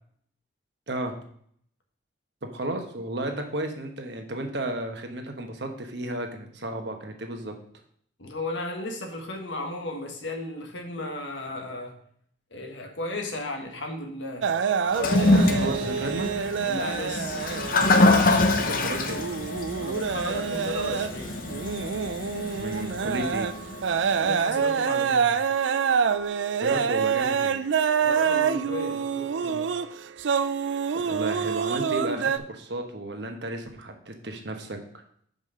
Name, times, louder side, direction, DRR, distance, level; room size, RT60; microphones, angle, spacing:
voice 1, 0.9-1.2 2.5-7.5 15.3-16.3 18.5-19.2 22.6-23.5 26.6-27.6 31.0-34.8, right 1 dB, 65° right, 4 dB, 1.2 m, -33 dB
voice 2, 8.2-12.0 12.5-14.5 15.0-15.3 16.6-17.4 19.8-21.4 24.0-25.3 28.0-29.7, left 1 dB, 80° left, 3 dB, 1.4 m, -34 dB
sound 1, 14.4-32.4, right 6 dB, 80° right, 0.4 m, -27 dB
Toilet flush, 14.9-24.2, left 2 dB, 45° left, 0.7 m, -25 dB
5.6 x 5.2 x 6.4 m, 0.63 s
head